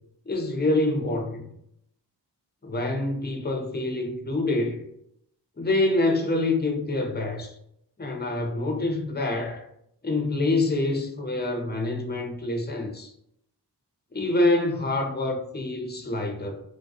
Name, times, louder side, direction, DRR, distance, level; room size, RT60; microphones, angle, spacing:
voice 1, 0.3-1.5 2.6-4.8 5.6-7.5 8.0-9.6 10.0-13.1 14.1-16.6, left 2 dB, 25° left, 0.6 m, -26 dB
3.2 x 2.3 x 2.7 m
wide cardioid pair, 45°, 41 cm